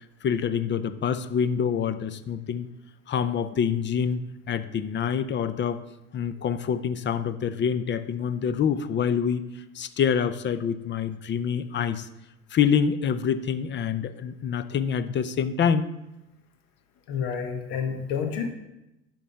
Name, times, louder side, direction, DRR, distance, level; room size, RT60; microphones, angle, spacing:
voice 1, 0.2-2.7 3.1-5.8 6.1-9.5 9.7-12.1 12.5-15.9, left 7 dB, 35° left, 12 dB, 0.6 m, -26 dB
voice 2, 17.1-18.5, left 6 dB, 80° left, 4 dB, 1.6 m, -29 dB
11.0 x 3.9 x 5.7 m, 0.91 s
supercardioid pair, 110°, 33 cm